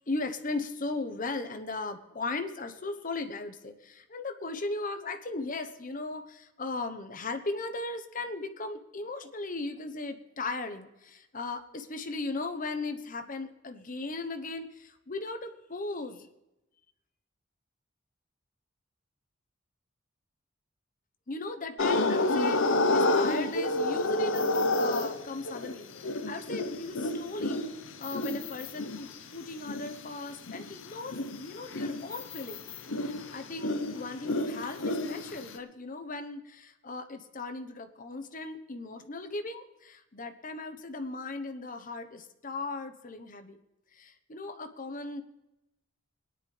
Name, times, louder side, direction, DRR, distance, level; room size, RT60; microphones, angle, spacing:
voice 1, 0.1-16.3 21.3-27.6 28.0-32.6 33.0-43.6 43.9-45.2, left 3 dB, 45° left, 8 dB, 1.0 m, -37 dB
sound 1, 21.8-30.0 30.5-35.6, left 2 dB, 90° left, 0.9 m, -30 dB
20.5 x 10.0 x 3.4 m, 0.93 s
head